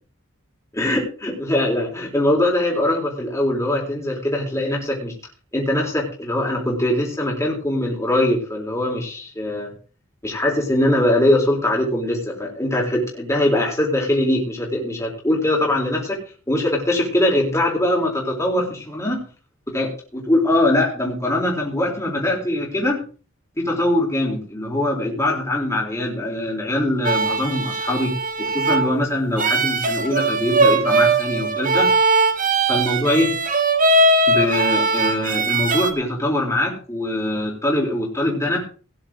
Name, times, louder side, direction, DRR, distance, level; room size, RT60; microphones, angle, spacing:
voice 1, 0.7-5.1 5.5-9.7 10.2-16.2 16.5-19.2 19.7-23.0 23.6-28.1 28.4-31.9 32.7-33.3 34.3-38.6, left 1 dB, 15° left, -3 dB, 4.0 m, -22 dB
sound 1, 27.0-35.9, right 3 dB, 40° right, 1.6 m, -20 dB
17.5 x 10.0 x 3.8 m, 0.37 s
head